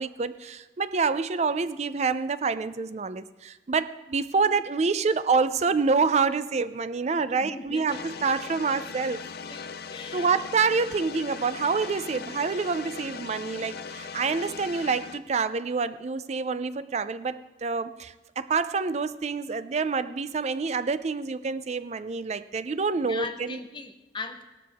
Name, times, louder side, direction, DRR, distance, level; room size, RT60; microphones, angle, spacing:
voice 1, 0.0-9.2 10.1-23.6, right 4 dB, 40° right, 13 dB, 0.4 m, -27 dB
voice 2, 7.3-8.0 9.5-10.3 23.0-24.4, left 3 dB, 25° left, 5 dB, 0.9 m, -39 dB
sound 1, 7.9-15.2, left 5 dB, 60° left, 0.6 m, -39 dB
16.5 x 12.5 x 3.5 m, 1.1 s
head